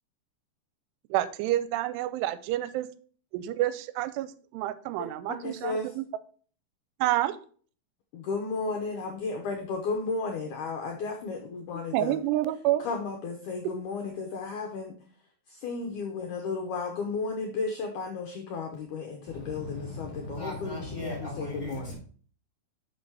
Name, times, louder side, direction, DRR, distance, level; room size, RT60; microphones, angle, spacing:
voice 1, 1.1-2.9 3.3-6.0 7.0-7.4 11.9-12.8 13.6-13.7, right 14 dB, 90° right, 2.7 m, -28 dB
voice 2, 5.3-5.9 8.1-12.2 12.8-15.0 15.5-21.9, left 4 dB, 85° left, 1.7 m, -34 dB
voice 3, 19.3-21.9, left 2 dB, 15° left, 4.1 m, -38 dB
6.1 x 6.1 x 4.6 m
omnidirectional pair, 4.8 m